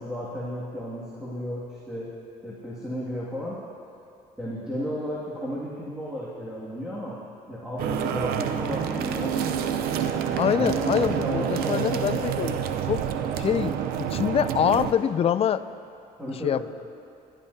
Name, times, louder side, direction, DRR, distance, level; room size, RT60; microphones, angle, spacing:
voice 1, 0.0-2.1 2.4-3.6 4.4-7.2 7.5-9.4 10.4-12.0 16.2-16.7, equal, 5° right, -9 dB, 2.2 m, -33 dB
sound 1, 7.8-14.9, right 8 dB, 80° right, 0.7 m, -28 dB
voice 2, 10.4-12.6 12.9-13.0 13.4-13.7 14.0-15.6 16.4-16.7, left 9 dB, 40° left, 14 dB, 0.4 m, -25 dB
21.0 x 12.0 x 2.8 m, 2.6 s
cardioid pair, 95°, 16 cm